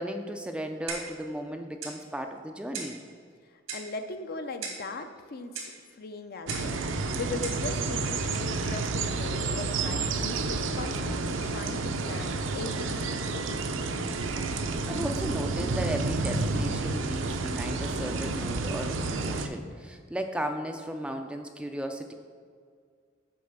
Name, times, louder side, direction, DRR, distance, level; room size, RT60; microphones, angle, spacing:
voice 1, 0.0-3.0 14.7-22.1, equal, 5° right, 5 dB, 0.4 m, -35 dB
Clock, 0.9-1.2 1.8-2.0 2.7-3.0 3.7-3.9 4.6-4.9 5.5-5.8 6.5-6.7 7.4-7.6, right 5 dB, 90° right, 1.8 m, -37 dB
voice 2, 3.7-5.7 6.0-6.8 7.1-13.6, left 3 dB, 50° left, 8 dB, 0.6 m, -39 dB
sound 1, 6.5-19.5, right 3 dB, 65° right, 0.6 m, -30 dB
6.8 x 4.8 x 6.6 m, 2.1 s
head